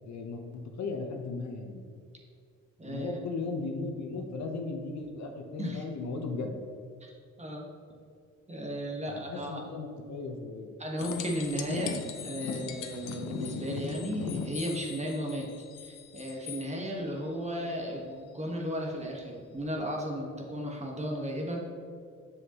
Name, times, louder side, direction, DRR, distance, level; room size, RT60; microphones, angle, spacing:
voice 1, 0.1-1.8 2.8-6.5 9.1-10.7, left 3 dB, 65° left, 3 dB, 1.0 m, -36 dB
voice 2, 2.8-3.1 5.6-5.8 7.0-7.7 8.5-9.6 10.8-15.5 15.8-21.6, equal, 20° right, 0 dB, 1.4 m, -35 dB
sound 1, 11.0-16.6 19.6-19.7, left 7 dB, 85° left, 0.7 m, -39 dB
7.5 x 6.6 x 3.0 m, 2.2 s
cardioid pair, 90°, 30 cm